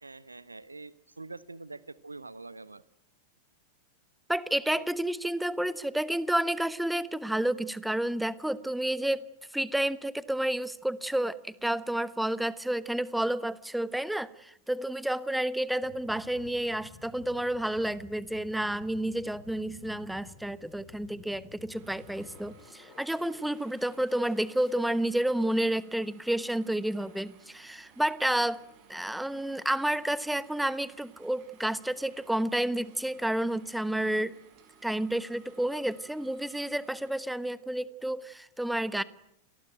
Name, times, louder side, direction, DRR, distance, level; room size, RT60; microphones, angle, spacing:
voice 1, 0.0-2.8 4.8-4.9, right 3 dB, 80° right, 18 dB, 1.1 m, -45 dB
voice 2, 4.3-9.2 9.5-28.6 28.9-34.4 34.8-39.0, right 1 dB, 5° right, 18 dB, 1.1 m, -30 dB
sound 1, 15.8-22.6, left 6 dB, 45° left, 7.6 m, -53 dB
sound 2, 21.5-25.1 27.7-27.8, left 5 dB, 15° left, 7.9 m, -58 dB
sound 3, 21.7-37.1, right 6 dB, 45° right, 7.3 m, -59 dB
29.0 x 19.5 x 9.1 m, 0.77 s
figure-of-eight pair, 90°, 0 cm